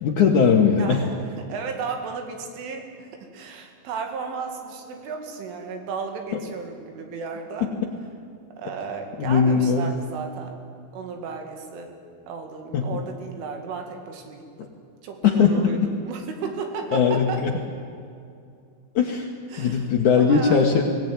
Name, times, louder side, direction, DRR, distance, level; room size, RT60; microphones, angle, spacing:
voice 1, 0.0-1.0 9.2-9.9 12.7-13.0 15.2-15.5 16.9-17.5 19.0-19.3 19.6-20.8, left 6 dB, 80° left, 0 dB, 1.7 m, -19 dB
voice 2, 0.8-7.7 8.6-10.6 10.9-11.9 12.3-14.7 15.0-15.8 16.0-17.4 19.5-19.9 20.1-20.8, right 5 dB, 75° right, 4 dB, 4.6 m, -34 dB
23.0 x 17.5 x 9.6 m, 2.4 s
omnidirectional pair, 5.7 m